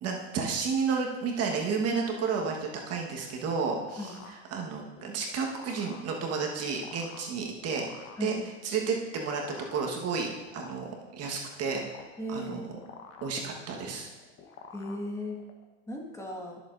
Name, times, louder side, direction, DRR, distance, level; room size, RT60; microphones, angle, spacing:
voice 1, 0.0-4.1 4.5-8.4 8.6-9.4 9.7-11.8 12.3-12.6 13.2-14.1, right 5 dB, 50° right, 1 dB, 1.4 m, -31 dB
sound 1, 3.2-15.6, left 6 dB, 50° left, 1.2 m, -50 dB
voice 2, 12.2-12.7 14.7-15.4 15.9-16.6, left 1 dB, 10° left, -1 dB, 1.7 m, -36 dB
14.5 x 6.9 x 2.6 m, 1.2 s
supercardioid pair, 95°, 32 cm